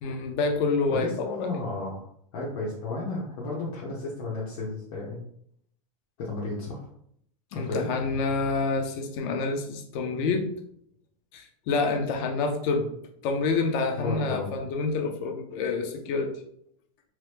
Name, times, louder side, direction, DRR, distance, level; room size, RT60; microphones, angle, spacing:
voice 1, 0.0-1.5 7.5-10.5 11.3-12.8 13.2-16.3, left 4 dB, 45° left, 4 dB, 0.6 m, -27 dB
voice 2, 0.9-2.0 2.3-5.2 6.2-6.8 7.5-7.9 14.0-14.6, left 2 dB, 60° left, -5 dB, 0.9 m, -33 dB
3.0 x 2.2 x 3.3 m, 0.69 s
supercardioid pair, 150°, 19 cm